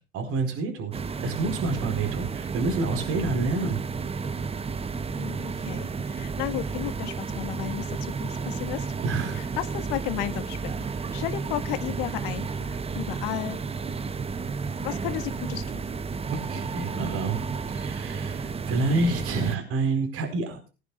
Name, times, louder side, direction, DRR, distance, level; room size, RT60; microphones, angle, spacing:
voice 1, 0.1-3.8 9.0-9.5 10.9-11.0 16.3-20.7, right 3 dB, 45° right, 4 dB, 4.5 m, -28 dB
sound 1, 0.9-19.6, right 5 dB, 20° right, 1.0 m, -32 dB
voice 2, 5.2-8.9 9.3-13.6 14.8-15.8, left 15 dB, 60° left, 10 dB, 1.8 m, -34 dB
21.5 x 10.0 x 2.4 m, 0.31 s
hypercardioid pair, 85°, 33 cm